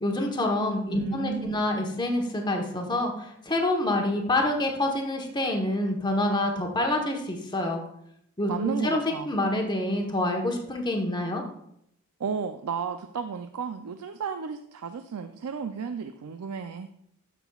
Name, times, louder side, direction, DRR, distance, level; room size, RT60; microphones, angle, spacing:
voice 1, 0.0-7.8 8.4-11.4, left 1 dB, 20° left, 2 dB, 1.0 m, -27 dB
voice 2, 0.9-1.6 8.5-9.3 12.2-16.9, right 6 dB, 90° right, 8 dB, 0.4 m, -33 dB
12.5 x 6.0 x 2.3 m, 0.73 s
head